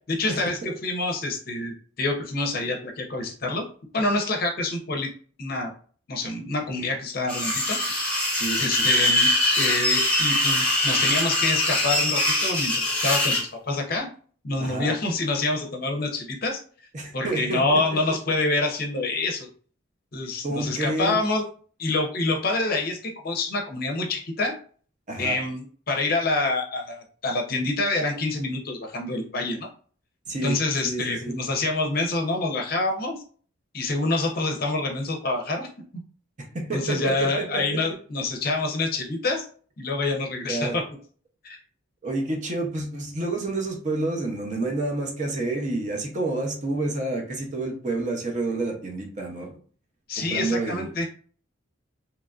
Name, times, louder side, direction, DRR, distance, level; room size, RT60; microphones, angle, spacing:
voice 1, 0.1-3.6 3.9-5.1 5.4-5.7 6.1-7.8 8.6-9.3 9.6-14.1 14.4-16.6 17.1-19.5 20.1-21.4 21.8-24.5 25.2-29.7 30.4-33.2 33.7-35.7 36.7-39.5 39.8-40.8 41.4-41.6 50.1-51.0, left 2 dB, 45° left, 3 dB, 0.6 m, -26 dB
sound 1, 7.3-13.4, left 1 dB, 5° left, 0.7 m, -23 dB
voice 2, 8.3-8.9 14.6-14.9 16.9-17.6 20.4-21.2 25.1-25.4 30.3-30.5 30.8-31.4 36.5-37.8 40.5-40.8 42.0-49.6 50.2-51.0, right 2 dB, 35° right, 1 dB, 0.6 m, -29 dB
2.9 x 2.4 x 2.3 m, 0.43 s
head